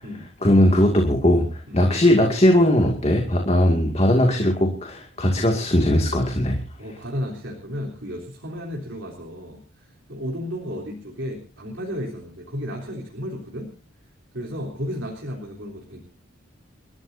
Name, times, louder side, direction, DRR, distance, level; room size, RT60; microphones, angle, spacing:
voice 1, 0.4-6.6, left 1 dB, 30° left, 2 dB, 2.3 m, -19 dB
voice 2, 6.8-13.7 14.3-16.0, equal, 60° right, -1 dB, 3.5 m, -33 dB
30.0 x 13.5 x 2.7 m, 0.36 s
head